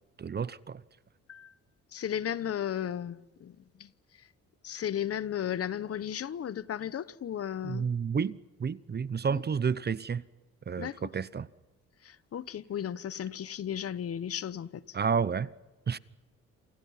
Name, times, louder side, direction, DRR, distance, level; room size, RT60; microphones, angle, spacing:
voice 1, 0.2-0.8 7.6-10.2 10.7-11.5 14.9-15.5 15.9-16.0, right 6 dB, 35° right, 0.9 m, -30 dB
voice 2, 1.9-3.9 4.6-7.9 9.3-9.4 10.8-11.0 12.0-14.8, left 9 dB, 50° left, 1.0 m, -35 dB
29.0 x 27.5 x 5.7 m
cardioid pair, 90°, 30 cm